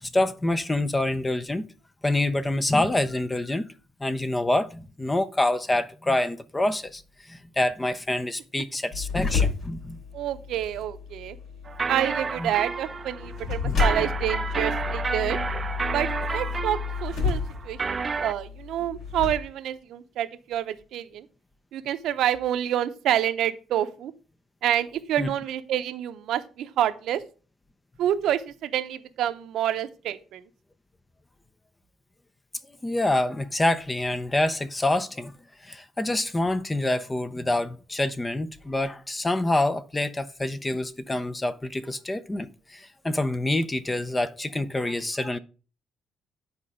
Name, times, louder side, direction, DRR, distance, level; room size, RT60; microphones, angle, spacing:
voice 1, 0.0-1.7 2.0-3.7 4.0-7.0 7.3-10.0 12.4-12.5 13.6-13.8 25.2-25.3 32.8-35.3 35.6-45.4, left 1 dB, 15° left, 0.7 m, -26 dB
sound 1, 8.9-19.3, left 5 dB, 70° left, 3.4 m, -31 dB
voice 2, 10.1-11.4 11.9-15.4 15.9-16.1 16.3-17.8 18.2-21.2 21.7-24.1 24.6-27.2 28.0-30.4, right 11 dB, 75° right, 0.7 m, -28 dB
sound 2, 11.7-18.3, right 5 dB, 30° right, 0.5 m, -31 dB
9.6 x 4.2 x 4.9 m
cardioid pair, 95°, 0 cm